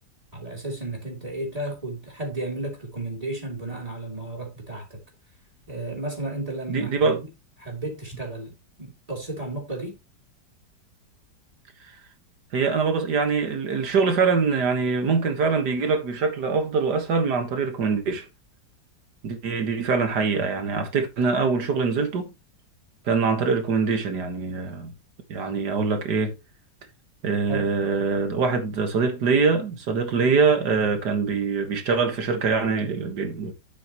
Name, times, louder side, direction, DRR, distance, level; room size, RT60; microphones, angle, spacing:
voice 1, 0.3-5.0 5.7-7.2 7.6-10.0 27.5-27.7, right 2 dB, 20° right, 3.3 m, -33 dB
voice 2, 6.7-7.2 11.9-12.0 12.5-18.3 19.2-22.3 23.1-24.9 25.3-26.4 27.2-33.5, right 5 dB, 65° right, 2.1 m, -23 dB
9.3 x 8.6 x 3.0 m
omnidirectional pair, 1.9 m